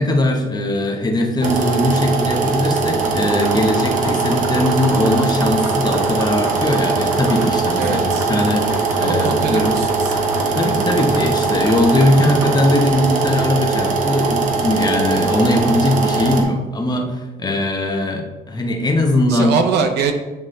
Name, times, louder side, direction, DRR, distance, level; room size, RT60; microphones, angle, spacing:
voice 1, 0.0-8.0 8.3-9.8 10.6-19.6, left 1 dB, 25° left, 2 dB, 1.1 m, -19 dB
sound 1, 1.4-16.4, right 4 dB, 50° right, 1.1 m, -20 dB
sound 2, 2.9-13.2, right 2 dB, 15° right, 0.9 m, -32 dB
voice 2, 7.8-8.3 9.0-10.2 19.3-20.1, right 6 dB, 80° right, 7 dB, 0.8 m, -22 dB
10.0 x 3.5 x 3.2 m, 1.1 s
cardioid pair, 110°, 17 cm